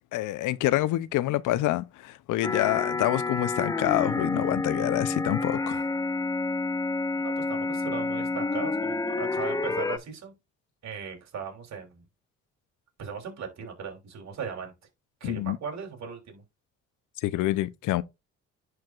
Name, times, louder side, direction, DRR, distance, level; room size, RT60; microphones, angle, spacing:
voice 1, 0.1-5.8 15.2-15.6 17.2-18.0, left 16 dB, 85° left, 0.6 m, -27 dB
sound 1, 2.4-10.0, left 3 dB, 10° left, 0.4 m, -29 dB
voice 2, 7.1-10.4 10.8-12.0 13.0-14.7 15.2-16.4, right 6 dB, 65° right, 3.1 m, -38 dB
10.5 x 4.8 x 2.4 m
cardioid pair, 90°, 30 cm